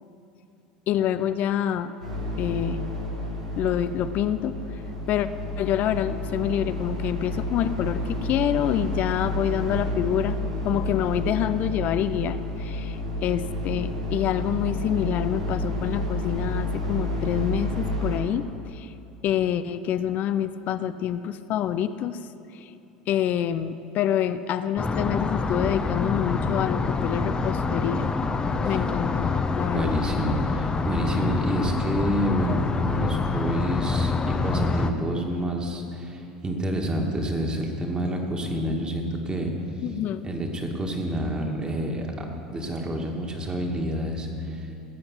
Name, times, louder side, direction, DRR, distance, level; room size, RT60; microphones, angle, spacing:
voice 1, 0.9-1.9 2.4-2.9 3.5-4.6 5.1-5.3 5.6-10.4 10.6-18.9 19.2-22.2 22.5-22.7 23.1-28.1 28.6-30.0 39.8-40.3, left 10 dB, 50° left, 12 dB, 0.5 m, -27 dB
sound 1, 2.0-18.2, left 1 dB, 90° right, 2.0 m, -30 dB
sound 2, 24.8-34.9, left 4 dB, 20° left, 0.9 m, -26 dB
voice 2, 29.7-39.5 40.2-44.7, equal, 25° right, 2 dB, 2.2 m, -28 dB
19.0 x 7.8 x 6.1 m, 2.8 s
figure-of-eight pair, 75°, 4 cm